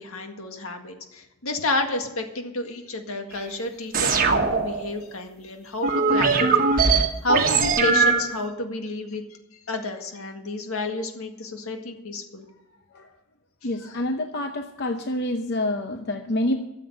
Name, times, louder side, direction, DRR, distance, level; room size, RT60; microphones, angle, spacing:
voice 1, 0.0-9.2 9.7-12.5 13.8-14.0, left 2 dB, 80° left, 4 dB, 1.9 m, -31 dB
sound 1, 3.9-5.0 5.8-8.4, right 4 dB, 40° right, 1.3 m, -20 dB
voice 2, 13.6-16.6, left 1 dB, 50° left, 5 dB, 0.8 m, -27 dB
13.5 x 7.5 x 7.8 m, 0.89 s
head